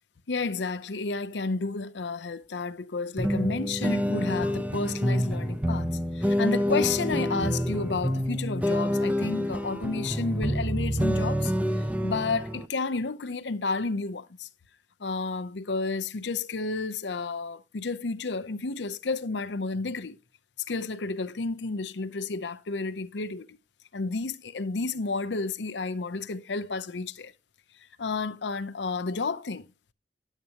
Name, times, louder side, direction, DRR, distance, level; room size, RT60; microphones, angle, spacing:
voice 1, 0.3-5.9 6.1-14.5 15.0-20.2 20.7-23.6 23.9-27.3 28.0-29.7, left 3 dB, 80° left, 0.7 m, -31 dB
sound 1, 3.2-12.7, equal, 10° right, 0.6 m, -27 dB
11.0 x 8.2 x 2.9 m
head